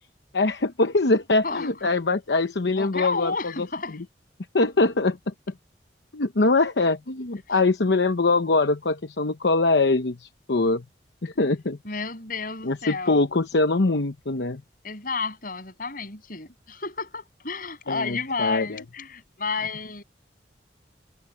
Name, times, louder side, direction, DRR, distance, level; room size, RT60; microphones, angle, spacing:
voice 1, 0.3-3.7 4.5-5.3 6.1-10.8 11.2-11.8 12.6-14.6 17.9-18.8, left 3 dB, 75° left, 0.9 m, -23 dB
voice 2, 1.4-1.9 2.7-4.0 7.5-7.6 11.8-13.2 14.8-20.0, left 4 dB, 50° left, 7.6 m, -31 dB
head